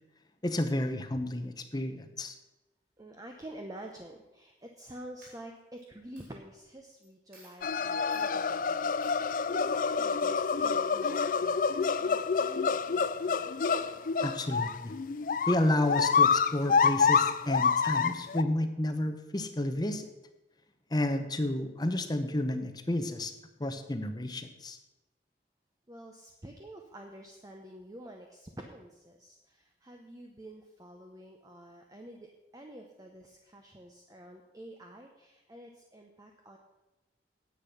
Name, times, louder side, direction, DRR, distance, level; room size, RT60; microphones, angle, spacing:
voice 1, 0.4-2.3 14.2-14.9 15.5-20.1 20.9-23.3 23.6-24.8, left 1 dB, 25° left, 8 dB, 0.8 m, -31 dB
voice 2, 3.0-13.8 25.9-36.6, right 1 dB, 20° right, 2 dB, 0.8 m, -49 dB
Coin (dropping), 4.6-4.9 5.2-5.8 6.2-6.3 7.0-7.1 7.3-7.6 8.1-8.3 9.0-9.1, right 1 dB, 55° right, 4.8 m, -57 dB
sound 1, 7.6-18.4, left 5 dB, 50° left, 0.4 m, -27 dB
10.0 x 8.3 x 5.7 m, 1.0 s
head